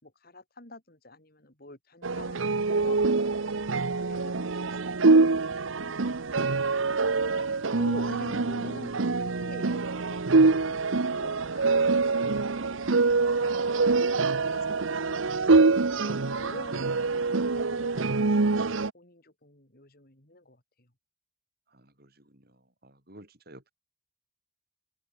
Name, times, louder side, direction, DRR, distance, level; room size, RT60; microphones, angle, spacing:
voice 1, 0.0-6.6 7.2-7.5 7.8-12.6 13.2-14.1 14.4-17.0 17.6-20.6, left 2 dB, 50° left, 5.1 m, -48 dB
sound 1, 2.0-18.9, right 3 dB, 85° right, 0.9 m, -25 dB
voice 2, 21.7-23.7, right 1 dB, 50° right, 7.5 m, -54 dB
open air
head